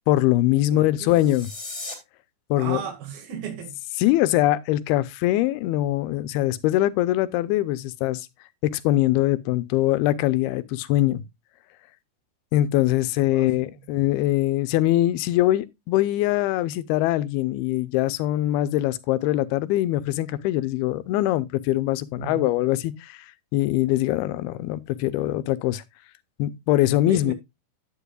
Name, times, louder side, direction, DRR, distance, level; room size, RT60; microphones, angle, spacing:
voice 1, 0.1-1.5 2.5-2.8 4.0-8.2 8.6-11.2 12.5-23.3 23.5-25.8 26.4-27.3, left 15 dB, 85° left, 2.6 m, -22 dB
voice 2, 0.7-1.3 2.6-3.8 13.3-13.6 22.2-22.4 27.1-27.3, right 8 dB, 70° right, 3.7 m, -35 dB
sound 1, 1.0-1.9, left 3 dB, 20° left, 2.9 m, -37 dB
10.0 x 9.8 x 2.3 m
omnidirectional pair, 4.4 m